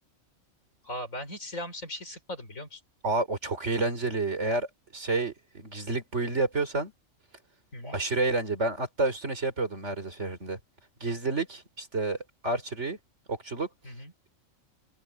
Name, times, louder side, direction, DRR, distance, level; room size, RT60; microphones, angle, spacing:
voice 1, 0.8-2.8 7.7-8.0 13.8-14.1, left 1 dB, 75° left, 5.4 m, -38 dB
voice 2, 3.0-4.7 4.9-6.9 7.8-10.6 11.0-12.2 12.4-13.0 13.3-13.7, right 3 dB, 55° right, 4.0 m, -29 dB
open air
omnidirectional pair, 1.4 m